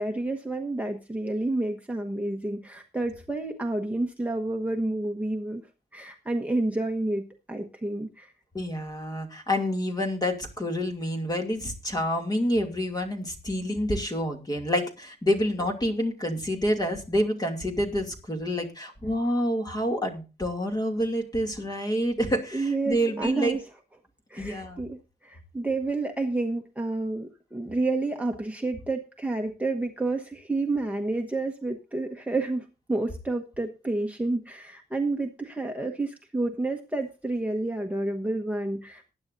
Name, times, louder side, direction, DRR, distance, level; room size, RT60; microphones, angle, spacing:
voice 1, 0.0-5.6 5.9-8.3 22.5-23.6 24.3-39.1, right 2 dB, 10° right, 2 dB, 1.2 m, -29 dB
voice 2, 8.5-23.6 24.4-24.8, equal, 20° left, 2 dB, 2.6 m, -28 dB
20.0 x 9.7 x 2.7 m, 0.31 s
wide cardioid pair, 175°, 18 cm